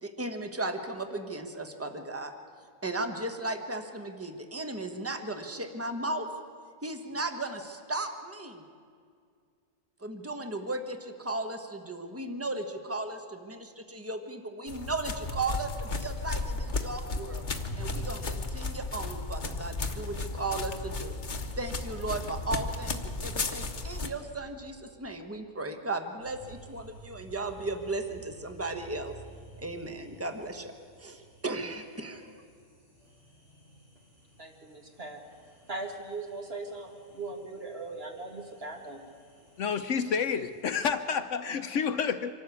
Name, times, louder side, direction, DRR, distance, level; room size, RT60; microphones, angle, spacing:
voice 1, 0.0-2.3 2.8-6.3 6.8-8.6 10.0-17.4 17.8-21.1 21.6-29.1 29.6-30.7 31.0-32.4, right 2 dB, 10° right, 6 dB, 1.2 m, -36 dB
sound 1, 14.7-24.1, left 3 dB, 35° left, 1.1 m, -34 dB
sound 2, 26.2-40.6, right 2 dB, 65° right, 6.2 m, -55 dB
voice 2, 34.4-39.0, right 3 dB, 45° right, 2 dB, 2.2 m, -40 dB
voice 3, 39.6-42.3, left 6 dB, 65° left, 10 dB, 1.0 m, -29 dB
25.0 x 12.0 x 8.4 m, 2.2 s
omnidirectional pair, 1.5 m